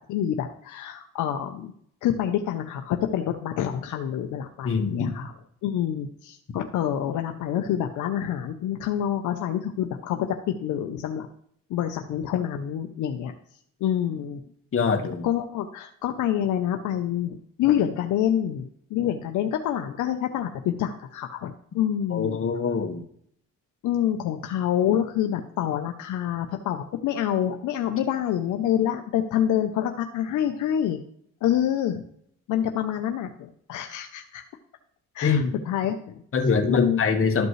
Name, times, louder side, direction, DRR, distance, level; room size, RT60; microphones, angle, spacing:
voice 1, 0.1-1.7 2.0-5.3 5.6-11.3 11.7-13.3 13.8-14.4 15.2-22.4 23.8-31.0 31.4-32.0 32.5-34.4 35.1-36.2 36.7-37.0, left 10 dB, 80° left, 6 dB, 0.7 m, -27 dB
voice 2, 4.6-5.1 14.7-15.2 22.1-23.0 35.2-35.5 36.3-37.5, left 5 dB, 45° left, 4 dB, 1.5 m, -23 dB
12.5 x 5.3 x 3.2 m, 0.66 s
cardioid pair, 90°, 30 cm